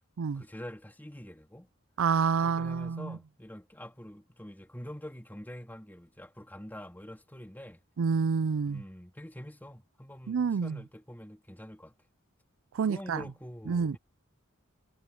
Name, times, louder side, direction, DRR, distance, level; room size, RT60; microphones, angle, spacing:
voice 1, 0.3-1.7 2.4-7.8 8.7-11.9 12.8-14.0, equal, 10° left, 3.2 m, -45 dB
voice 2, 2.0-3.2 8.0-8.8 10.3-10.8 12.7-13.2 13.7-14.0, right 5 dB, 80° right, 0.4 m, -28 dB
head